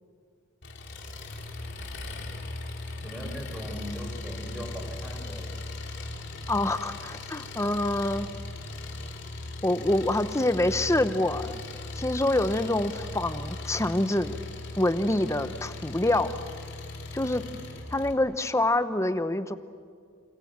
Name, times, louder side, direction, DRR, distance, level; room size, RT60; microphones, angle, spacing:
Engine, 0.6-18.1, left 2 dB, 60° left, 3.2 m, -38 dB
voice 1, 3.0-5.5 17.2-17.5, equal, ahead, 0 dB, 6.2 m, -40 dB
voice 2, 6.5-8.3 9.6-11.6 12.0-14.4 14.8-16.3 17.1-17.4 17.9-19.5, left 1 dB, 15° left, 11 dB, 0.9 m, -26 dB
28.5 x 27.0 x 7.5 m, 2.1 s
head